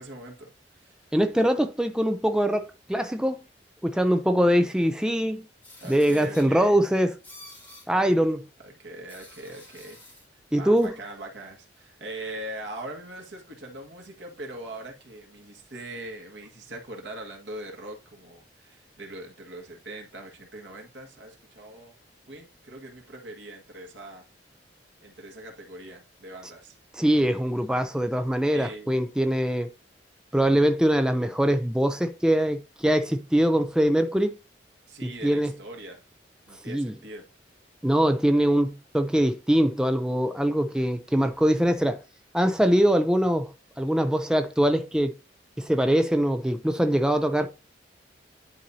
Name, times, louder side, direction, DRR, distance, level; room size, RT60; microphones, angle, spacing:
voice 1, 0.0-1.0 5.8-6.8 8.6-10.0 10.6-22.0 22.3-24.2 25.0-26.8 28.5-29.0 34.9-36.0 36.5-37.3, right 1 dB, 80° right, 1.7 m, -41 dB
voice 2, 1.1-3.4 3.8-5.4 5.9-7.1 7.9-8.4 10.5-10.9 26.9-29.7 30.3-34.4 35.0-35.5 36.7-36.9 37.8-42.0 42.3-43.5 43.8-45.2 45.6-47.5, equal, 5° right, 0.4 m, -23 dB
sound 1, 5.6-6.5 7.2-7.9 9.1-10.2 10.8-10.9, left 2 dB, 15° left, 3.1 m, -48 dB
10.5 x 4.2 x 2.7 m
head